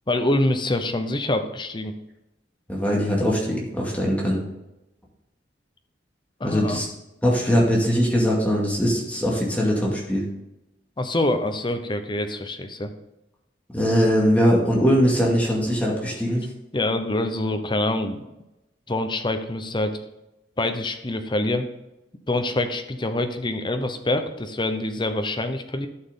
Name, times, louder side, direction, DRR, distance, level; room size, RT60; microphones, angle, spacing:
voice 1, 0.1-1.9 6.4-6.8 11.0-12.9 16.7-18.2 18.9-20.0 20.6-21.7 22.3-25.9, left 1 dB, 25° left, 7 dB, 0.9 m, -25 dB
voice 2, 2.7-4.4 6.4-6.9 7.2-10.3 13.7-16.5, equal, 10° left, -4 dB, 2.3 m, -21 dB
11.5 x 6.4 x 3.8 m, 0.93 s
head